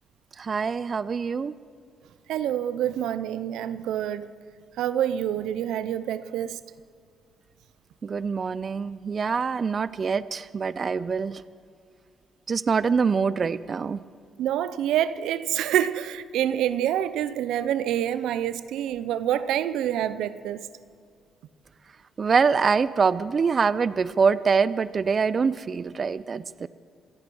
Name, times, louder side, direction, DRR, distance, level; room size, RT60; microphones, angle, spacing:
voice 1, 0.4-1.5 8.0-11.4 12.5-14.0 22.2-26.7, right 5 dB, 40° right, 0.5 m, -24 dB
voice 2, 2.3-4.3 4.8-6.6 14.4-20.7, right 11 dB, 85° right, 0.6 m, -27 dB
25.5 x 8.8 x 6.2 m
cardioid pair, 90°, 0 cm